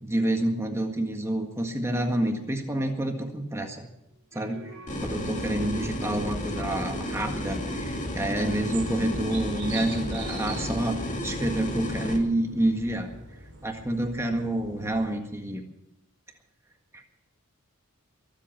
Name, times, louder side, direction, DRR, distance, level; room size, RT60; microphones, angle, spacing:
voice 1, 0.0-3.9 4.3-4.7 5.0-13.1 13.6-15.6 16.9-17.0, right 1 dB, 10° right, 3 dB, 1.7 m, -28 dB
sound 1, 4.1-10.4, right 1 dB, 70° right, 4.3 m, -48 dB
sound 2, 4.9-12.2, left 1 dB, 35° left, 2.4 m, -32 dB
sound 3, 5.8-15.2, right 3 dB, 50° right, 4.0 m, -44 dB
22.5 x 8.4 x 7.5 m, 0.86 s
head